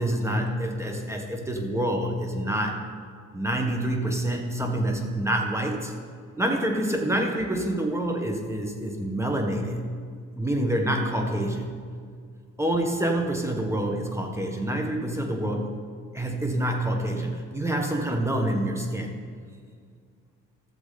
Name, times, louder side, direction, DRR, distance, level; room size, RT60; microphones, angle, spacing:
voice 1, 0.0-2.8 3.3-5.9 6.4-9.8 10.4-11.7 12.6-15.7 16.1-19.1, right 1 dB, 10° right, 2 dB, 1.6 m, -27 dB
14.5 x 7.0 x 4.3 m, 2.1 s
cardioid pair, 90°, 30 cm